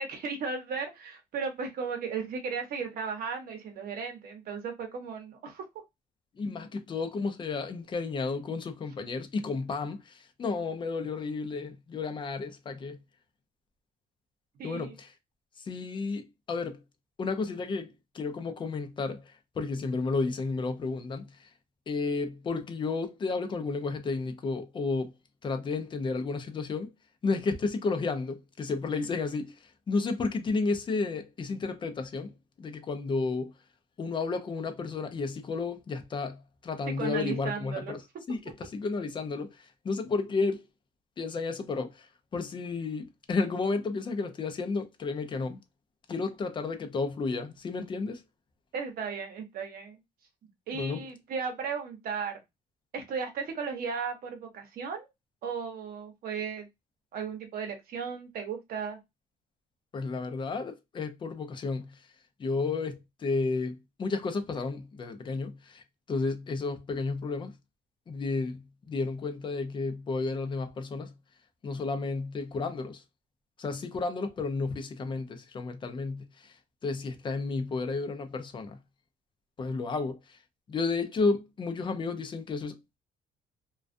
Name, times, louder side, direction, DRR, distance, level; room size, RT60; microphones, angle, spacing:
voice 1, 0.0-5.7 14.6-14.9 37.0-37.9 48.7-50.0 50.7-52.4 52.9-55.1 55.4-56.7 57.1-59.0, right 5 dB, 60° right, 0.8 m, -35 dB
voice 2, 6.4-13.0 14.6-15.1 15.6-16.8 17.2-21.5 21.9-25.1 25.4-26.9 27.2-32.3 32.6-33.5 34.0-38.0 38.3-40.6 41.2-42.1 42.3-45.6 46.1-48.2 50.7-51.0 59.9-62.0 62.4-67.5 68.1-71.1 71.6-73.0 73.6-76.6 76.8-78.8 79.6-80.4 80.7-83.0, left 4 dB, 30° left, 0.5 m, -32 dB
2.3 x 2.2 x 2.5 m
cardioid pair, 110°, 17 cm